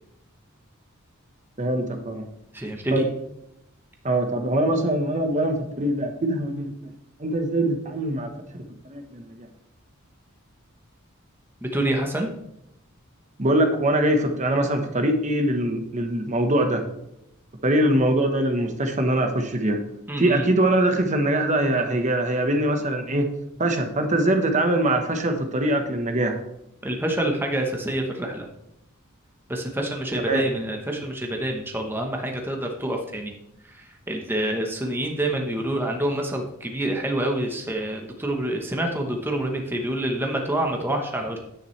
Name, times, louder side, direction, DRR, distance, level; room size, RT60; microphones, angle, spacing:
voice 1, 1.6-2.2 2.9-3.1 4.0-6.9 7.2-8.3 8.8-9.5 13.4-16.8 17.6-19.8 20.2-23.3 23.6-26.4 30.2-30.4, right 1 dB, 35° right, 5 dB, 1.2 m, -23 dB
voice 2, 2.5-3.0 11.6-12.3 20.1-20.4 26.8-28.5 29.5-33.4 33.7-41.4, right 1 dB, 10° right, 2 dB, 1.1 m, -27 dB
10.0 x 9.3 x 3.3 m, 0.83 s
head